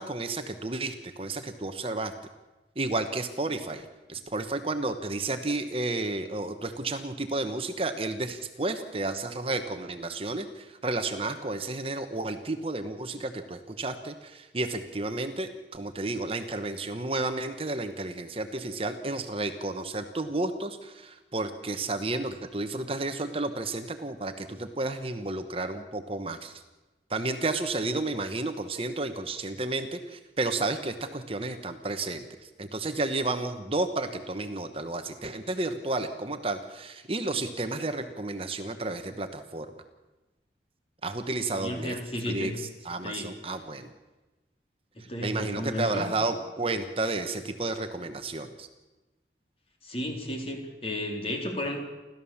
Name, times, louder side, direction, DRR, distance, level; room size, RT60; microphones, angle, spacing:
voice 1, 0.0-2.1 2.8-26.6 27.1-39.7 41.0-42.0 42.3-43.9 45.2-48.7, right 2 dB, 30° right, 8 dB, 1.1 m, -32 dB
voice 2, 41.5-42.5 43.0-43.3 45.0-46.1 49.8-51.8, left 1 dB, 35° left, 2 dB, 3.8 m, -33 dB
29.5 x 13.5 x 7.2 m, 1.1 s
head